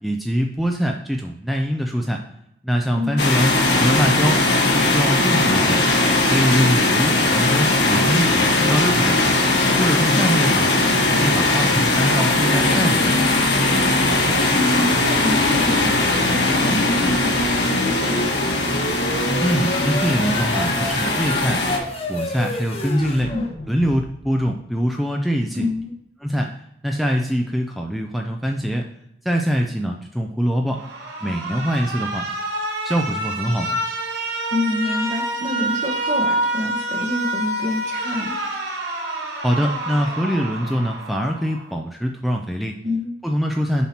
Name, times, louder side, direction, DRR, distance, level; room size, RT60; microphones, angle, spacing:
voice 1, 0.0-2.2 2.6-5.8 6.3-9.4 9.8-10.8 11.1-13.3 19.4-21.6 22.1-23.3 23.7-25.7 26.2-26.6 26.8-28.9 29.2-30.8 31.2-32.3 32.8-33.8 39.4-42.8 43.2-43.9, equal, ahead, 1 dB, 0.4 m, -23 dB
voice 2, 2.9-3.2 14.5-18.3 23.3-23.5 25.5-25.9 34.5-38.3 42.8-43.1, left 1 dB, 40° right, 3 dB, 1.0 m, -27 dB
sound 1, 3.2-21.8, left 2 dB, 70° left, 1.5 m, -19 dB
sound 2, 17.0-24.3, left 1 dB, 30° left, 0.8 m, -30 dB
Alarm, 30.7-41.7, right 1 dB, 70° right, 1.4 m, -27 dB
7.2 x 5.6 x 2.8 m, 0.79 s
head